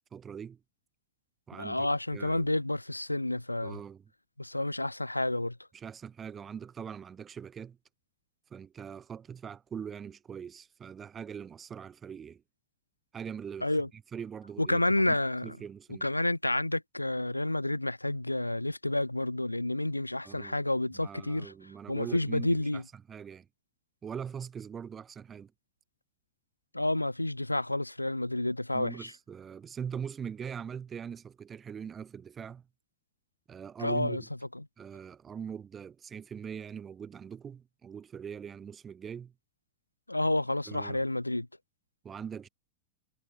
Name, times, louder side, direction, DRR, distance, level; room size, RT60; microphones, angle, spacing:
voice 1, 0.1-0.6 1.5-1.9 2.1-2.5 3.6-4.1 5.7-7.8 8.5-12.4 13.1-13.8 14.1-16.1 20.2-20.6 21.0-23.5 24.0-25.5 28.7-32.7 33.5-34.3 34.8-39.3 40.7-41.0 42.0-42.5, right 7 dB, 20° right, 6.0 m, -42 dB
voice 2, 1.6-3.8 4.4-5.6 13.6-13.9 14.6-15.6 16.0-21.5 21.9-22.8 26.7-29.1 33.8-34.2 34.5-34.6 40.1-41.5, left 1 dB, 85° left, 3.0 m, -30 dB
figure-of-eight pair, 90°, 0 cm